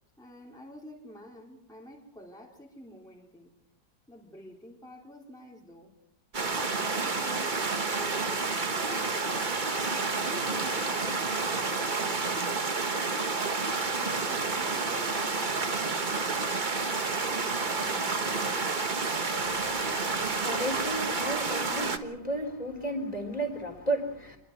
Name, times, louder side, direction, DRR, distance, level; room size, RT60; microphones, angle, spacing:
voice 1, 0.2-3.5 4.1-6.0 6.4-7.6 8.0-9.7 10.2-13.1 13.9-15.9 17.0-18.9, equal, ahead, -2 dB, 3.4 m, -49 dB
sound 1, 6.3-22.0, right 4 dB, 30° right, 1.2 m, -30 dB
voice 2, 19.4-24.4, right 1 dB, 20° left, 4 dB, 4.1 m, -34 dB
29.0 x 22.0 x 4.7 m, 0.75 s
omnidirectional pair, 1.9 m